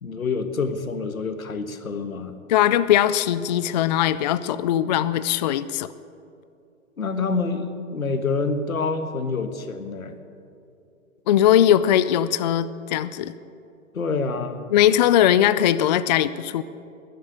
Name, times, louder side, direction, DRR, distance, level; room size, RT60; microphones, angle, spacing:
voice 1, 0.0-2.3 7.0-10.1 13.9-14.7, left 4 dB, 90° left, 8 dB, 1.5 m, -27 dB
voice 2, 2.5-5.9 11.3-13.3 14.7-16.6, left 11 dB, 35° left, 14 dB, 0.4 m, -20 dB
20.0 x 11.0 x 6.6 m, 2.6 s
hypercardioid pair, 120°, 41 cm